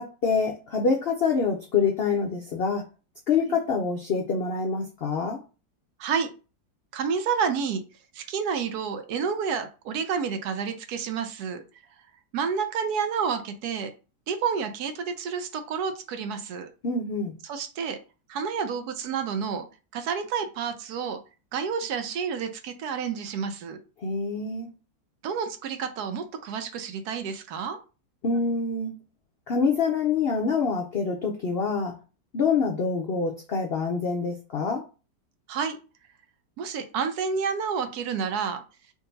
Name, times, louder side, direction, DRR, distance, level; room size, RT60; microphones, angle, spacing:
voice 1, 0.0-2.8 3.3-5.4 16.8-17.3 24.0-24.7 28.2-29.0 29.5-31.9 32.3-34.8, left 5 dB, 80° left, 2 dB, 0.5 m, -26 dB
voice 2, 6.9-7.8 8.1-11.6 12.3-13.9 14.3-16.7 17.4-18.0 18.3-19.7 19.9-21.2 21.5-23.8 25.2-27.8 35.5-35.8 36.6-38.6, right 6 dB, 70° right, 8 dB, 1.1 m, -29 dB
3.7 x 2.6 x 3.9 m, 0.32 s
omnidirectional pair, 1.8 m